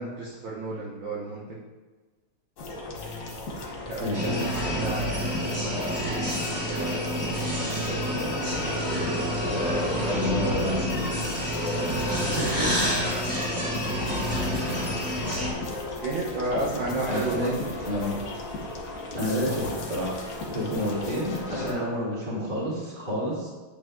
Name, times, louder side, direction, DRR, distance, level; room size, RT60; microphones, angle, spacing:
voice 1, 0.0-1.6 3.9-6.1 16.0-17.5 19.5-19.6, right 2 dB, 65° right, -5 dB, 1.8 m, -32 dB
sound 1, 2.6-21.7, left 2 dB, 60° left, 1.5 m, -35 dB
voice 2, 4.0-4.4 10.0-10.8 12.3-13.0 16.9-17.5 17.8-18.2 19.1-20.2 20.5-23.5, equal, 25° right, -6 dB, 2.2 m, -29 dB
sound 2, 4.1-15.5, equal, 5° right, 1.7 m, -28 dB
8.8 x 8.1 x 2.3 m, 1.3 s
omnidirectional pair, 2.4 m